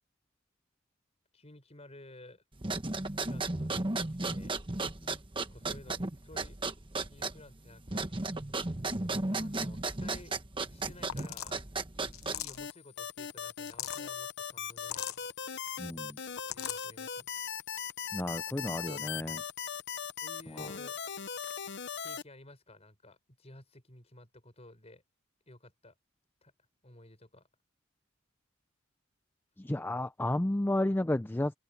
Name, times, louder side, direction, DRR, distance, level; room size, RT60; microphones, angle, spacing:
voice 1, 1.3-2.4 3.2-4.6 5.3-6.6 7.1-8.1 9.3-10.4 10.7-11.7 11.9-15.3 16.4-17.3 20.2-21.0 22.0-25.0 25.5-25.9 26.4-26.5 26.8-27.5, left 1 dB, 30° left, 5.6 m, -54 dB
sound 1, 2.6-12.6, right 3 dB, 25° right, 1.3 m, -35 dB
sound 2, 11.1-11.6 12.1-12.7 13.5-14.0 14.8-15.2 16.2-16.9, left 12 dB, 90° left, 0.8 m, -39 dB
sound 3, 12.6-22.2, left 7 dB, 55° left, 0.8 m, -39 dB
voice 2, 15.8-16.2 18.1-19.4 20.6-20.7 29.6-31.6, left 1 dB, 10° left, 0.4 m, -32 dB
open air
head